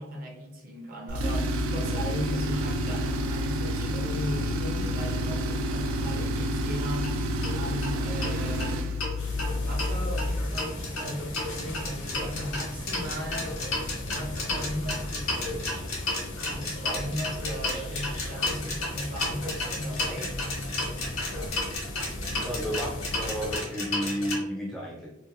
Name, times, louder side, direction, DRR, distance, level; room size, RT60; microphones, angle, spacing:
voice 1, 0.0-7.1 7.5-13.6 14.1-15.9 16.5-20.4 21.3-21.5 22.2-22.5, equal, 45° right, -1 dB, 0.6 m, -37 dB
Tools, 1.1-10.6, equal, 85° right, 0.3 m, -29 dB
sound 1, 7.0-7.1 7.4-7.5 7.8-7.9 8.2-9.1 9.4-24.4, left 2 dB, 85° left, 0.9 m, -33 dB
sound 2, 9.2-23.6, left 1 dB, 65° left, 0.6 m, -37 dB
voice 2, 22.4-22.9 23.2-25.1, equal, ahead, -3 dB, 0.3 m, -31 dB
2.6 x 2.2 x 2.6 m, 0.88 s
head